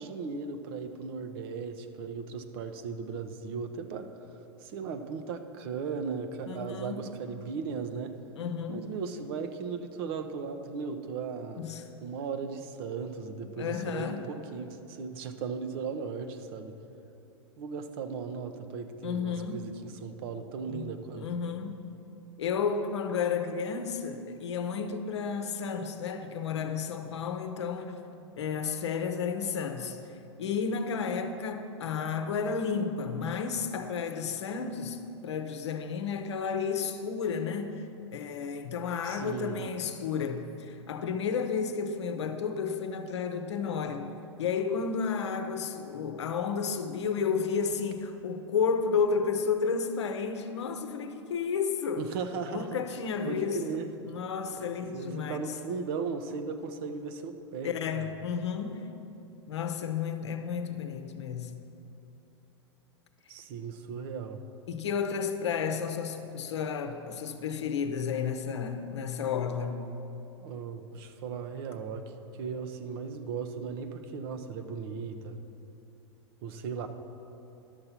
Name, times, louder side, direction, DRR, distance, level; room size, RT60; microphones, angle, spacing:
voice 1, 0.0-4.1 4.6-8.1 8.7-11.6 12.0-16.7 17.6-21.3 39.0-39.6 52.0-52.8 53.2-53.9 54.9-58.1 63.3-64.4 70.4-75.4 76.4-76.9, right 5 dB, 55° right, 8 dB, 0.8 m, -37 dB
voice 2, 6.5-7.2 8.4-8.9 11.6-11.9 13.4-14.2 19.0-19.7 20.7-21.8 22.4-28.0 28.4-30.0 30.4-37.8 38.1-44.1 44.4-52.1 52.5-55.5 57.6-58.9 59.5-61.5 64.7-69.8, left 6 dB, 70° left, 7 dB, 0.8 m, -32 dB
11.5 x 6.7 x 5.8 m, 2.9 s
hypercardioid pair, 100°, 15 cm